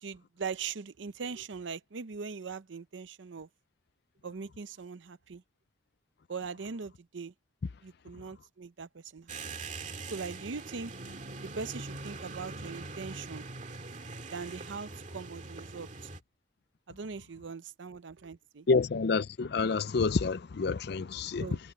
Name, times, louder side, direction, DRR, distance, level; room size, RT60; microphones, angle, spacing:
voice 1, 0.0-3.5 4.2-5.4 6.3-7.3 7.8-9.6 10.1-10.9 11.4-13.5 14.3-16.1 16.9-18.7 21.4-21.6, right 5 dB, 80° right, 0.6 m, -41 dB
sound 1, 9.3-16.2, right 3 dB, 40° right, 2.0 m, -42 dB
voice 2, 18.7-21.5, left 4 dB, 60° left, 0.5 m, -28 dB
head